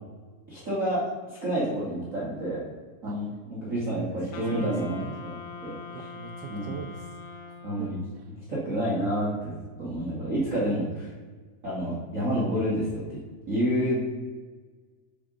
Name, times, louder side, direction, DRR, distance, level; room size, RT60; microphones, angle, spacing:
voice 1, 0.5-2.6 3.0-6.1 6.5-6.7 7.6-8.0 8.5-11.1 11.6-13.2 13.5-14.0, equal, 45° right, -7 dB, 1.0 m, -29 dB
Wind instrument woodwind instrument, 4.3-8.2, left 5 dB, 75° left, 2.2 m, -42 dB
voice 2, 4.3-5.2 5.9-7.2 7.8-8.3, right 7 dB, 85° right, 3 dB, 2.0 m, -41 dB
5.2 x 4.9 x 5.1 m, 1.4 s
omnidirectional pair, 3.4 m